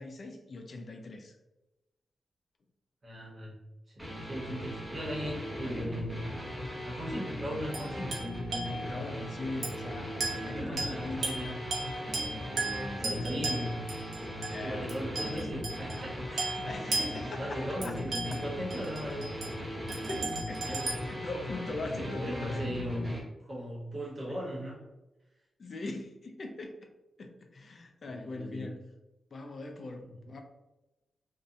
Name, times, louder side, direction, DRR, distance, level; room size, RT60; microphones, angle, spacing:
voice 1, 0.0-1.4 8.8-11.6 14.4-15.7 16.6-18.0 20.0-20.8 21.1-22.7 25.6-26.8 27.2-28.8 29.3-30.4, left 2 dB, 45° left, 4 dB, 0.3 m, -41 dB
voice 2, 3.0-3.5 4.1-6.3 6.8-8.2 10.5-11.6 12.4-13.8 14.6-17.0 17.3-19.6 20.6-21.1 21.8-23.1 23.4-24.8 28.0-28.7 30.0-30.1, equal, 35° right, -4 dB, 0.8 m, -38 dB
sound 1, 4.0-23.2, left 1 dB, 10° right, 0.5 m, -38 dB
sound 2, 7.7-9.1 9.6-9.8 10.2-16.1 16.4-19.5 19.9-20.9, right 3 dB, 65° right, 0.6 m, -37 dB
2.6 x 2.1 x 2.5 m, 1.0 s
wide cardioid pair, 145°, 0 cm